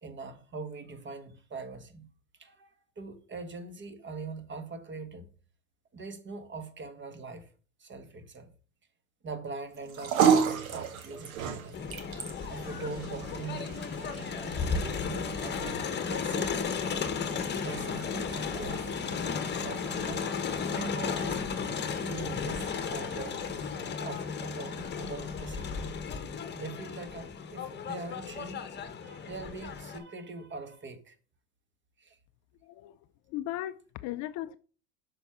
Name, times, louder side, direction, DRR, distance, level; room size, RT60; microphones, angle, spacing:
voice 1, 0.0-2.1 2.4-5.3 5.9-7.5 7.8-8.5 9.2-11.8 12.5-13.8 14.6-16.7 17.5-18.2 18.5-18.9 19.6-20.3 20.7-21.4 22.0-23.4 24.0-25.9 26.5-28.7 29.0-31.1 32.0-32.2, right 3 dB, 25° right, 1.5 m, -42 dB
sound 1, 9.7-26.2, right 7 dB, 75° right, 1.7 m, -35 dB
Crowd, 11.7-30.0, left 6 dB, 25° left, 1.2 m, -34 dB
voice 2, 33.3-34.6, left 14 dB, 45° left, 0.5 m, -36 dB
6.9 x 5.2 x 5.9 m
hypercardioid pair, 90°, 42 cm